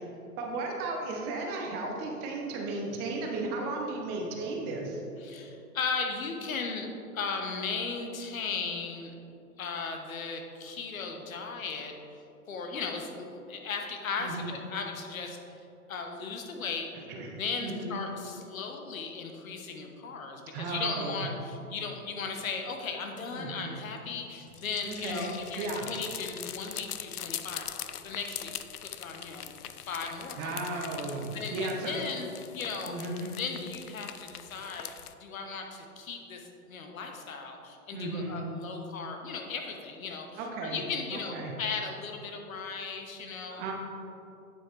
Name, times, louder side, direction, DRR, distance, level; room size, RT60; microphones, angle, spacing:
voice 1, 0.4-5.0 14.2-14.5 17.1-18.0 20.5-21.3 23.3-23.8 24.9-25.9 30.4-32.0 32.9-33.3 37.9-38.4 40.4-40.8 41.1-41.5 43.5-43.7, right 2 dB, 20° right, 0 dB, 0.8 m, -35 dB
voice 2, 5.2-6.9 7.1-9.1 9.6-12.2 12.5-15.4 15.9-16.9 17.3-29.6 29.8-30.6 31.3-33.0 33.4-34.9 35.2-43.6, left 5 dB, 60° left, 3 dB, 1.2 m, -37 dB
sound 1, 24.5-35.1, left 10 dB, 75° left, 0.6 m, -42 dB
8.9 x 7.3 x 3.3 m, 2.8 s
figure-of-eight pair, 120°, 45 cm